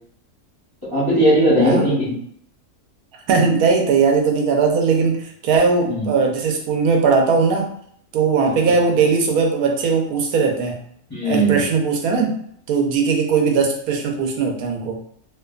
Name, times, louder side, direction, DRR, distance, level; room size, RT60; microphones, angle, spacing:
voice 1, 0.9-2.1 5.9-6.1 8.5-8.6 11.1-11.6, right 1 dB, 25° left, -9 dB, 0.6 m, -18 dB
voice 2, 3.3-7.7 8.1-10.8 11.2-12.3 12.7-15.0, right 5 dB, 85° right, 2 dB, 1.1 m, -19 dB
2.5 x 2.2 x 2.3 m, 0.64 s
omnidirectional pair, 1.5 m